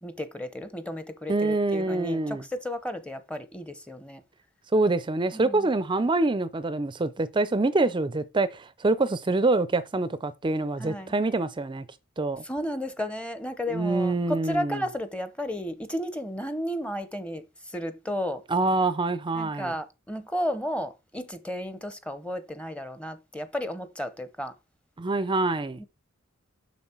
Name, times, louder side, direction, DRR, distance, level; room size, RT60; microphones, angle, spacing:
voice 1, 0.0-4.2 5.3-5.7 10.8-11.1 12.4-18.4 19.3-24.5 25.8-25.9, equal, 5° left, 0.8 m, -33 dB
voice 2, 1.3-2.4 4.7-11.9 12.2-12.4 13.7-14.8 18.5-19.7 25.0-25.8, right 2 dB, 20° right, 0.5 m, -25 dB
7.3 x 6.0 x 4.4 m
head